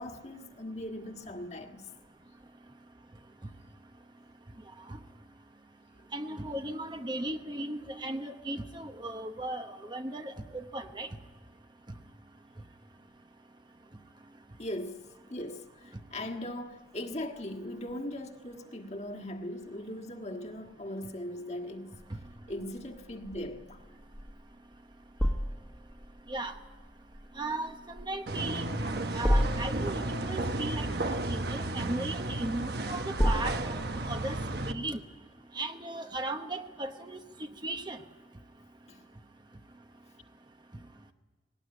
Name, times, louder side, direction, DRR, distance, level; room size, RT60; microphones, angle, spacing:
voice 1, 0.0-1.8 14.6-15.6 16.1-21.9 22.5-23.8 38.9-39.0, left 1 dB, 35° left, 1.6 m, -39 dB
voice 2, 6.1-11.1 26.3-26.5 27.4-33.8 34.1-34.4 34.7-35.0 35.5-37.2 37.6-38.0, right 2 dB, 25° right, 0.9 m, -37 dB
sound 1, 22.0-34.7, equal, 5° left, 1.4 m, -34 dB
sound 2, 28.3-34.7, right 2 dB, 55° right, 1.1 m, -33 dB
19.0 x 18.5 x 9.7 m
head